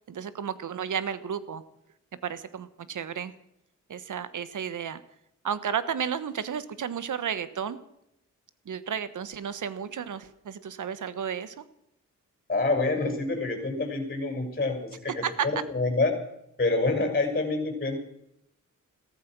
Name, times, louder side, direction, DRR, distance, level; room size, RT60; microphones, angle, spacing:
voice 1, 0.1-1.6 2.2-3.3 3.9-5.0 5.4-7.8 8.6-11.7 15.2-15.5, right 8 dB, 70° right, 15 dB, 1.4 m, -32 dB
voice 2, 12.5-16.2 16.6-18.0, left 3 dB, 30° left, 4 dB, 6.2 m, -27 dB
16.0 x 14.0 x 6.2 m, 0.79 s
cardioid pair, 75°, 32 cm